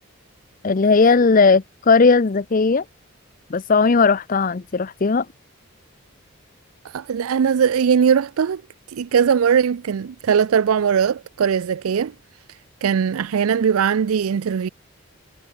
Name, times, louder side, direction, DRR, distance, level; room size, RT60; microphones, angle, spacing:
voice 1, 0.6-2.8 3.5-5.3, left 4 dB, 40° left, 0.5 m, -17 dB
voice 2, 6.8-8.6 8.9-12.1 12.8-14.7, right 7 dB, 85° right, 0.4 m, -20 dB
head